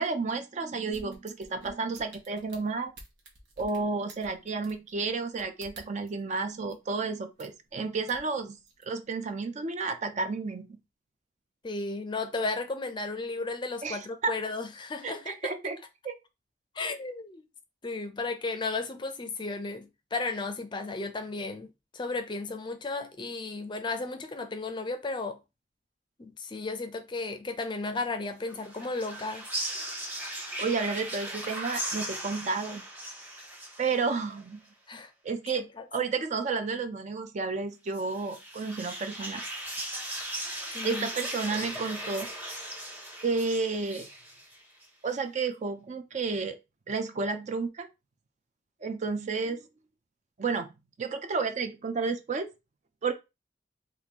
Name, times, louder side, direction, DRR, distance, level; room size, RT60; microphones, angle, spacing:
voice 1, 0.0-2.9 3.6-8.6 8.8-10.8 13.8-14.3 15.0-15.8 16.0-16.2 30.6-32.8 33.8-34.6 35.2-35.6 35.9-39.4 40.8-42.3 43.2-44.1 45.0-46.5 46.9-47.9 48.8-49.6 50.4-50.7 51.0-52.5 53.0-53.1, right 4 dB, 40° right, 0.4 m, -31 dB
sound 1, 0.9-6.2 6.7-6.8 7.4-7.7 8.0-8.8 9.3-9.4, right 2 dB, 80° right, 1.1 m, -51 dB
voice 2, 11.6-15.5 16.8-17.4 17.8-21.7 21.9-25.4 26.2-29.5 34.9-35.1 35.5-35.9 40.7-41.1, left 3 dB, 25° left, 0.5 m, -34 dB
sound 2, 28.4-34.4 37.9-44.8, right 1 dB, 10° right, 0.8 m, -38 dB
3.7 x 2.5 x 2.9 m
head